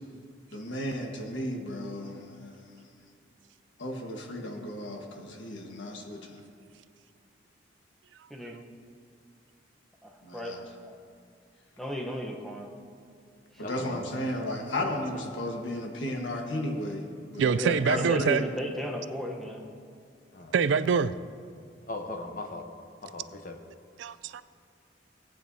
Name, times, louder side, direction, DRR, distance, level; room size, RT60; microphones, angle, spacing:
voice 1, 0.5-2.8 3.8-6.4 10.2-10.6 13.6-17.5 17.8-18.4, left 1 dB, 80° left, 1 dB, 1.3 m, -34 dB
voice 2, 10.0-10.6 11.8-12.7 13.5-13.6 17.5-19.6, left 1 dB, ahead, -1 dB, 0.9 m, -36 dB
voice 3, 13.6-14.3 14.8-15.0 20.3-20.5 21.9-22.7 23.0-23.6, left 2 dB, 45° left, 4 dB, 0.9 m, -39 dB
voice 4, 17.4-18.5 20.5-21.2 24.0-24.4, right 6 dB, 70° right, 15 dB, 0.3 m, -25 dB
18.0 x 8.8 x 2.7 m, 2.3 s
head